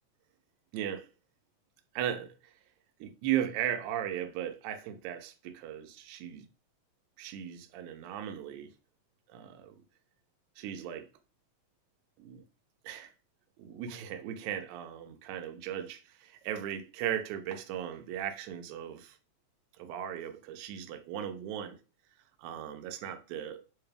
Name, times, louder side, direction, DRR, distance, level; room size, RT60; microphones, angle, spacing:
voice 1, 0.7-1.1 2.0-2.3 3.0-6.5 7.2-8.7 9.3-9.8 10.6-11.1 12.2-12.4 12.8-13.1 13.6-19.2 19.8-21.8 22.4-23.6, right 10 dB, 80° right, 1.9 m, -37 dB
4.7 x 2.2 x 3.3 m
omnidirectional pair, 3.4 m